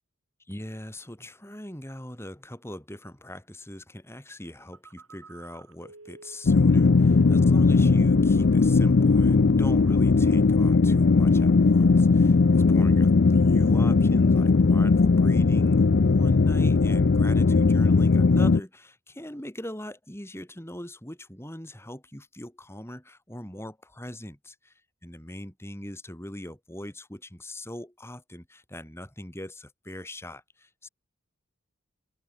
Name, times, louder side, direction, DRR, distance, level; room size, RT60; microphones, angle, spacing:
voice 1, 0.5-12.4 12.7-24.7 25.0-30.9, left 1 dB, 10° left, 3.8 m, -41 dB
Telephone, 4.6-7.6 7.9-8.6 8.9-9.2, right 3 dB, 80° right, 6.2 m, -50 dB
sound 1, 6.4-18.6, left 4 dB, 55° left, 0.5 m, -19 dB
head